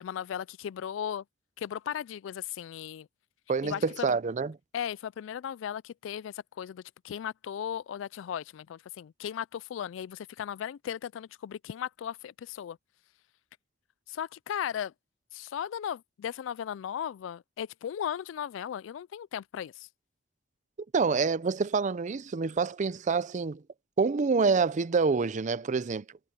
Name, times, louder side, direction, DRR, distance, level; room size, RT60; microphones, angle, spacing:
voice 1, 0.0-1.2 1.6-3.1 3.6-4.1 4.7-12.8 14.1-14.9 15.3-19.9, left 9 dB, 80° left, 0.3 m, -36 dB
voice 2, 3.5-4.5 20.9-23.6 24.0-26.0, right 4 dB, 40° right, 0.5 m, -27 dB
head